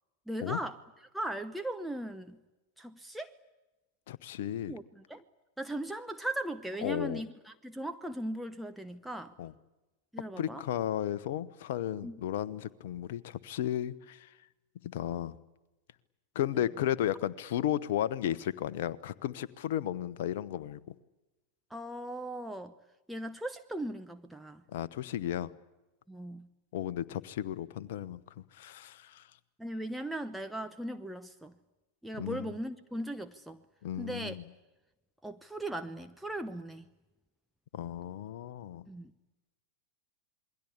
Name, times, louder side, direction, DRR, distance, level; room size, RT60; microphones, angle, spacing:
voice 1, 0.3-0.8 1.1-2.4 2.8-3.4 4.7-5.2 5.6-9.3 10.1-10.6 12.0-12.2 21.7-22.7 23.1-24.6 26.1-26.5 29.6-31.5 32.0-33.6 34.0-34.4 35.2-36.9 38.9-39.1, right 1 dB, 5° right, 6 dB, 1.0 m, -38 dB
voice 2, 4.1-4.8 6.8-7.2 9.4-9.5 10.4-14.3 14.8-15.4 16.3-20.8 24.7-25.5 26.7-29.3 32.2-32.5 33.8-34.4 37.7-38.8, left 11 dB, 55° left, 15 dB, 1.1 m, -34 dB
27.5 x 22.0 x 8.5 m, 1.1 s
figure-of-eight pair, 90°, 0 cm